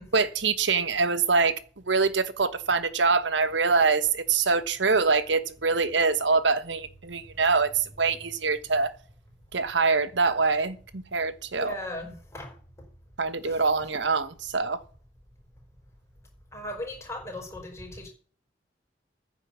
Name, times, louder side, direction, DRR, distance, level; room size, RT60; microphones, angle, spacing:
voice 1, 0.1-1.6 1.9-8.9 9.5-11.7 13.2-14.8, right 4 dB, 75° right, 1.2 m, -24 dB
voice 2, 11.5-12.5 13.4-13.6 16.5-18.1, left 1 dB, 15° left, 5.1 m, -37 dB
10.0 x 7.8 x 8.2 m
head